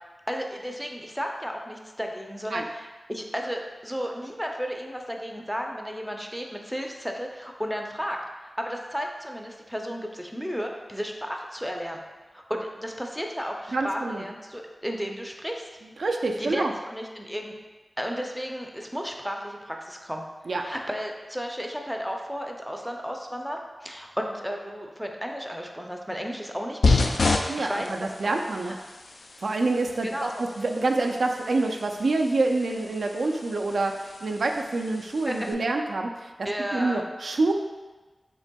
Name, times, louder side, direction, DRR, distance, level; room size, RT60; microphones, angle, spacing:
voice 1, 0.3-8.2 8.6-12.0 12.3-15.7 16.4-17.5 18.0-20.2 20.6-27.1 27.6-28.4 28.6-28.7 30.0-30.4 35.3-35.6 36.4-37.0, equal, ahead, 2 dB, 0.4 m, -33 dB
voice 2, 13.7-14.2 16.0-16.7 20.5-20.6 27.5-28.8 29.4-30.3 30.6-37.5, right 3 dB, 85° right, 3 dB, 0.3 m, -27 dB
sound 1, 26.8-35.5, left 3 dB, 85° left, 0.3 m, -30 dB
5.3 x 3.3 x 2.2 m, 1.2 s
wide cardioid pair, 90°, 0 cm